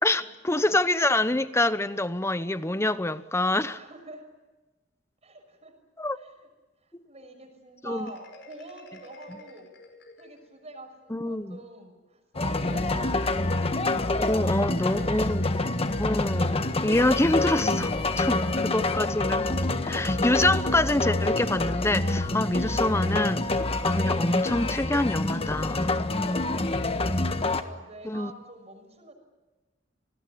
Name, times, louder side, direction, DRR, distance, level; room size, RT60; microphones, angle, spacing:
voice 1, 0.0-3.8 6.0-6.2 6.9-7.0 7.8-8.1 11.1-11.6 14.2-15.4 16.0-18.3 18.7-19.5 19.8-26.8 28.0-28.3, left 1 dB, 15° left, 1.0 m, -26 dB
voice 2, 3.7-4.3 5.2-5.8 6.1-6.5 6.8-9.7 10.2-13.7 14.5-15.9 18.1-18.8 27.5-29.1, right 2 dB, 35° right, 6.1 m, -47 dB
Marimba xylophone, 7.9-10.7, left 1 dB, 65° left, 5.1 m, -50 dB
sound 1, 12.3-27.6, left 2 dB, 30° left, 1.5 m, -27 dB
28.0 x 19.5 x 9.9 m
head